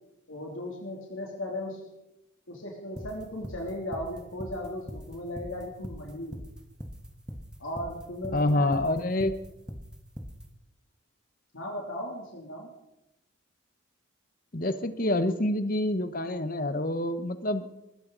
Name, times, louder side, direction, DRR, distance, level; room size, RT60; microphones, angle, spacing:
voice 1, 0.3-1.9 2.5-6.4 7.6-8.8 11.5-12.7, left 1 dB, 75° left, -1 dB, 3.1 m, -37 dB
sound 1, 3.0-10.4, equal, 5° right, 1.3 m, -40 dB
voice 2, 8.3-9.4 14.5-17.7, left 1 dB, 40° left, 10 dB, 1.1 m, -27 dB
20.0 x 15.0 x 4.1 m, 0.91 s
head